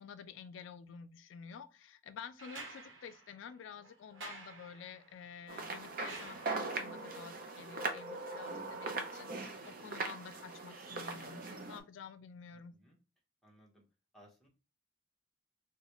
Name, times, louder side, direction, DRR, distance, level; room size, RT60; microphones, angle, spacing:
voice 1, 0.0-12.7, left 6 dB, 80° left, 0.3 m, -50 dB
sound 1, 2.4-7.0 8.6-8.7, right 3 dB, 85° right, 1.0 m, -51 dB
sound 2, 5.5-11.8, right 3 dB, 50° right, 0.5 m, -40 dB
voice 2, 12.5-13.0 13.4-13.8 14.1-14.5, equal, ahead, 0.8 m, -63 dB
3.9 x 2.2 x 2.9 m
head